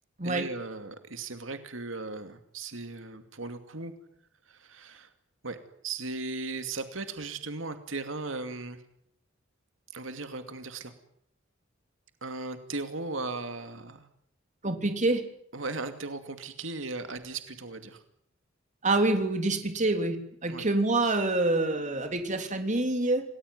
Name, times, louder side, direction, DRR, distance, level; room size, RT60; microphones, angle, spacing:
voice 1, 0.2-3.9 4.4-5.1 5.4-5.6 5.8-8.8 9.9-10.9 12.2-14.1 15.5-18.0 20.5-20.6, right 3 dB, 85° right, 8 dB, 2.5 m, -37 dB
voice 2, 14.6-15.2 18.8-20.2 20.4-23.2, right 2 dB, 40° right, 6 dB, 3.4 m, -26 dB
28.0 x 19.5 x 9.5 m, 0.69 s
head